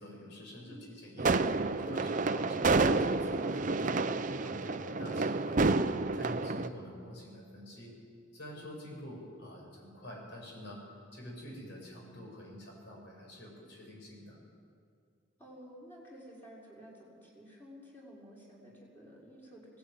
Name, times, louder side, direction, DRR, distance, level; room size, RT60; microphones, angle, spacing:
voice 1, 0.0-4.0 4.3-5.8 6.1-8.0 8.3-10.8 11.1-14.4, equal, 60° left, -1 dB, 6.7 m, -47 dB
voice 2, 0.6-1.0 15.4-19.8, equal, 10° left, -5 dB, 5.6 m, -52 dB
sound 1, 1.2-6.7, right 3 dB, 40° right, 0.6 m, -29 dB
20.5 x 17.5 x 9.4 m, 2.2 s
head